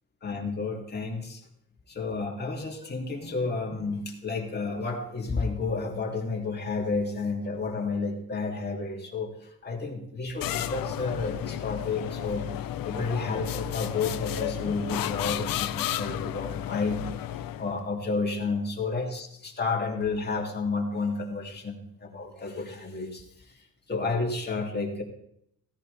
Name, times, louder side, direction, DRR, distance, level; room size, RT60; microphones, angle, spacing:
voice 1, 0.2-1.4 1.9-9.3 9.6-12.4 12.8-17.0 17.6-23.2 23.9-25.0, left 4 dB, 30° left, 0 dB, 3.0 m, -31 dB
sound 1, 10.4-17.8, left 12 dB, 85° left, 0.8 m, -32 dB
16.5 x 16.0 x 3.5 m, 0.75 s
cardioid pair, 135°, 33 cm